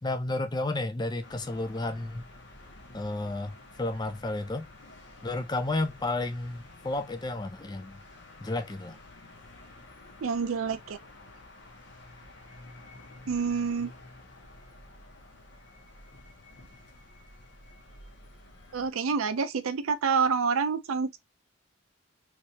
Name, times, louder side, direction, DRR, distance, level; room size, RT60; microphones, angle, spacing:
voice 1, 0.0-2.2 2.9-4.6 5.2-8.0 8.4-9.0, left 2 dB, 20° left, 0.4 m, -32 dB
sound 1, 1.2-18.9, left 2 dB, 55° left, 1.1 m, -51 dB
voice 2, 10.2-11.0 13.3-13.9 18.7-21.2, right 5 dB, 85° right, 0.5 m, -27 dB
3.3 x 3.2 x 2.8 m
head